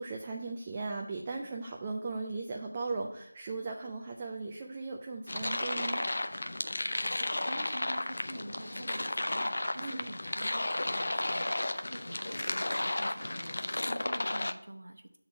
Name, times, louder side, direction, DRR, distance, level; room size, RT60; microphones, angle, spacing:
voice 1, 0.0-6.1 9.8-10.1, right 3 dB, 15° right, 0 dB, 0.3 m, -37 dB
sound 1, 5.3-14.5, left 1 dB, 50° left, 0.5 m, -33 dB
voice 2, 7.0-15.2, right 1 dB, 80° right, 4 dB, 0.9 m, -47 dB
7.3 x 3.9 x 5.7 m, 0.74 s
figure-of-eight pair, 175°, 0 cm